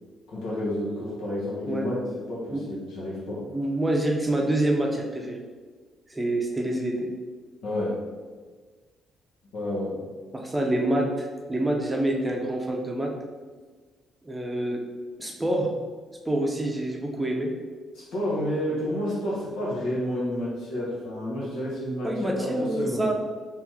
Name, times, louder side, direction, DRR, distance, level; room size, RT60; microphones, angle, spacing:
voice 1, 0.3-2.0 2.3-3.4 7.6-8.0 9.5-10.0 17.9-23.1, left 1 dB, 85° left, -6 dB, 1.3 m, -30 dB
voice 2, 3.4-5.4 6.1-7.1 10.3-13.1 14.2-14.8 15.2-15.7 16.3-17.5 22.0-23.1, right 1 dB, 15° right, 1 dB, 0.6 m, -26 dB
3.5 x 3.0 x 3.1 m, 1.4 s
cardioid pair, 90°, 0 cm